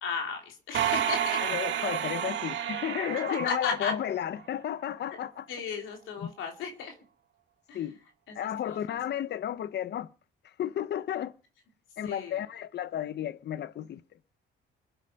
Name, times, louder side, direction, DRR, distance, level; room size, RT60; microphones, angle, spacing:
voice 1, 0.0-1.4 3.3-3.9 5.1-5.2 5.5-6.9 7.7-7.8 8.3-9.0 12.0-12.4, left 5 dB, 85° left, 3.2 m, -35 dB
sound 1, 0.7-4.4, right 10 dB, 65° right, 1.8 m, -31 dB
voice 2, 1.4-5.5 6.2-6.3 7.7-8.0 8.3-10.1 10.6-11.3 12.0-14.0, left 10 dB, 60° left, 0.8 m, -33 dB
22.0 x 8.9 x 5.7 m
cardioid pair, 90°, 20 cm